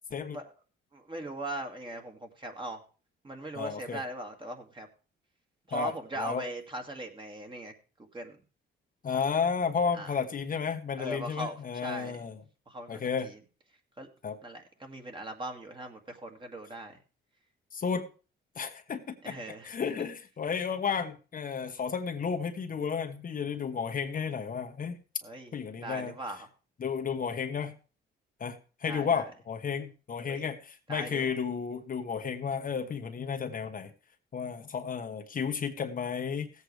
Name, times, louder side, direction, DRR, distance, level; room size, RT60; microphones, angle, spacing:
voice 1, 0.9-2.8 3.2-4.9 5.7-7.7 8.0-8.4 9.9-10.1 11.0-12.3 12.7-13.4 14.0-14.1 14.4-17.0 19.2-19.9 25.2-25.5 25.8-26.5 28.9-29.3 30.3-30.5 30.9-31.3, right 1 dB, 25° right, 3 dB, 2.1 m, -40 dB
voice 2, 3.5-4.0 5.7-6.4 9.0-12.4 12.9-13.3 14.2-14.4 17.7-18.1 18.6-19.4 19.6-25.0 25.5-26.1 26.8-27.7 28.4-33.9 34.3-36.5, left 6 dB, 45° left, 5 dB, 1.2 m, -32 dB
17.0 x 8.2 x 3.3 m, 0.34 s
cardioid pair, 90°, 20 cm